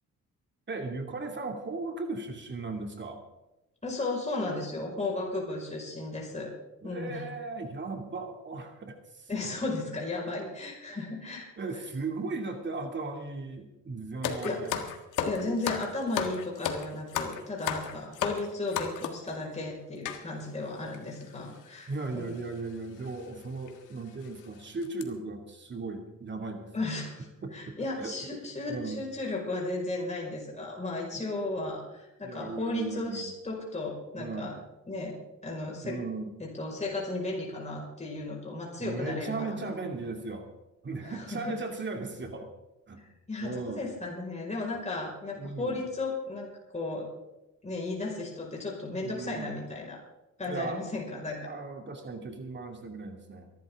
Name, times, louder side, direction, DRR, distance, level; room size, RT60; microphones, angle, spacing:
voice 1, 0.7-3.2 6.8-9.5 11.6-14.8 21.9-26.7 27.4-28.1 28.7-29.0 31.1-31.3 32.2-33.3 34.2-34.5 35.8-36.3 38.8-40.5 40.8-42.5 42.9-43.0 43.4-43.8 45.4-45.8 49.0-49.5 50.4-50.8 51.1-53.5, right 3 dB, 35° right, 4 dB, 2.6 m, -37 dB
voice 2, 3.8-6.5 6.8-7.3 9.3-11.5 14.4-14.6 15.2-22.4 26.7-34.5 34.9-35.2 35.4-36.0 36.4-39.7 41.0-41.6 43.3-47.1 47.6-50.0 50.4-51.5, left 2 dB, 25° left, -2 dB, 5.2 m, -35 dB
sound 1, 14.2-19.3 20.1-20.2 20.9-21.0 21.2-21.4 22.4-22.6 23.0-23.2 23.7-23.8 24.2-24.4 24.8-25.0, left 7 dB, 85° left, 1.7 m, -33 dB
23.5 x 12.0 x 3.7 m, 0.99 s
cardioid pair, 90°, 30 cm